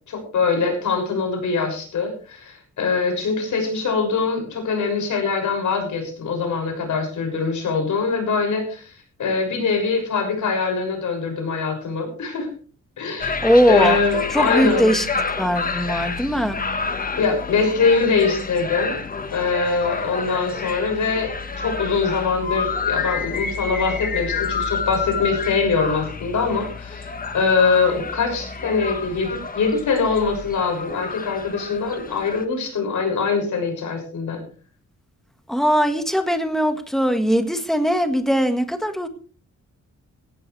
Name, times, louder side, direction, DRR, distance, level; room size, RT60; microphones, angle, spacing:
voice 1, 0.1-8.9 9.2-12.5 13.0-14.9 17.2-19.0 19.3-27.1 27.3-34.4, left 4 dB, 85° left, 3 dB, 6.5 m, -23 dB
sound 1, 13.2-32.4, left 5 dB, 30° left, 1.5 m, -29 dB
voice 2, 13.4-14.0 14.3-15.1 15.4-16.6 35.5-39.1, equal, ahead, 7 dB, 1.7 m, -20 dB
17.0 x 15.5 x 3.3 m, 0.39 s
wide cardioid pair, 160°, 29 cm